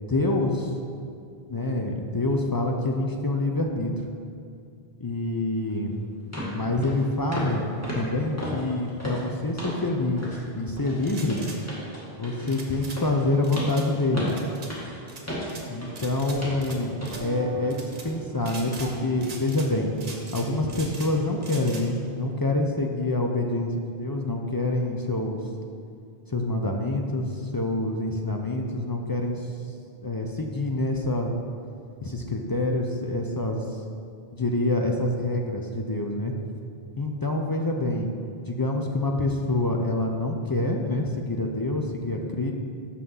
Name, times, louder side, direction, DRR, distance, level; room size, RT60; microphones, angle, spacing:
voice 1, 0.1-0.7 1.5-3.9 5.0-5.9 6.5-7.7 7.9-11.4 12.2-14.3 15.7-19.9 20.3-25.4 26.3-29.5 30.0-31.3 32.0-33.6 34.3-36.3 37.0-38.1 38.5-42.5, left 2 dB, 30° left, 2 dB, 0.4 m, -26 dB
sound 1, 5.7-5.8 6.3-6.6 6.8-7.0 7.3-7.6 7.8-9.9 10.2-10.4 10.8-16.1 16.4-16.6 17.0-17.2 17.6-17.8, equal, 15° left, 1.6 m, -35 dB
sound 2, 11.0-11.6 12.5-13.0 13.4-13.9 14.3-14.7 15.1-15.6 16.0-16.8 17.0-17.2 17.7-18.1 18.4-18.9 19.2-19.7 20.0-21.1 21.4-21.8, right 3 dB, 55° right, 1.0 m, -41 dB
sound 3, 15.9-21.6, right 2 dB, 85° right, 1.0 m, -43 dB
6.5 x 5.8 x 5.5 m, 2.3 s
omnidirectional pair, 1.0 m